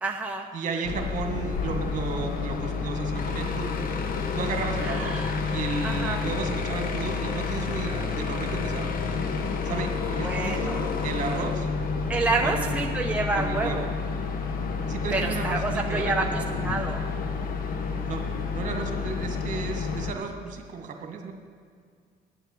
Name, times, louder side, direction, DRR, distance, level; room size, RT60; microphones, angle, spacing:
voice 1, 0.0-0.5 4.8-5.3 5.8-6.3 10.2-10.8 12.1-13.9 15.1-16.2 16.6-17.0, right 3 dB, 10° right, 0 dB, 0.9 m, -28 dB
voice 2, 0.5-3.8 4.4-8.9 9.6-11.7 12.4-13.0 13.4-13.9 14.9-16.4 18.0-21.3, right 4 dB, 50° right, 3 dB, 1.9 m, -34 dB
sound 1, 0.8-20.1, left 4 dB, 55° left, 1.1 m, -29 dB
10.5 x 8.2 x 7.9 m, 2.1 s
cardioid pair, 110°, 17 cm